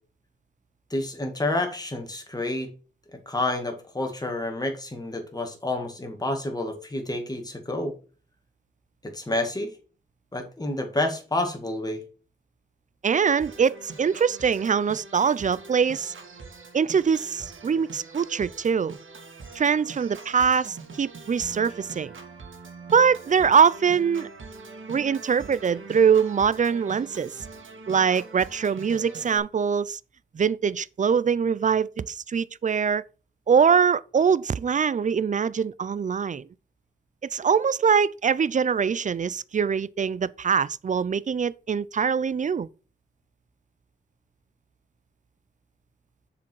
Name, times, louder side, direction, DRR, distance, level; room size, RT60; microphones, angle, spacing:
voice 1, 0.9-2.7 3.3-7.9 9.0-9.7 10.3-12.0, left 2 dB, 20° left, 2.0 m, -29 dB
voice 2, 13.0-16.1 16.7-19.0 19.6-22.1 22.9-24.3 24.9-27.4 27.9-30.0 30.3-33.0 33.5-36.5 37.2-42.7, right 6 dB, 40° right, 0.4 m, -23 dB
Organ, 13.4-29.4, right 4 dB, 80° right, 1.9 m, -43 dB
7.0 x 5.0 x 4.6 m
wide cardioid pair, 105°, 20 cm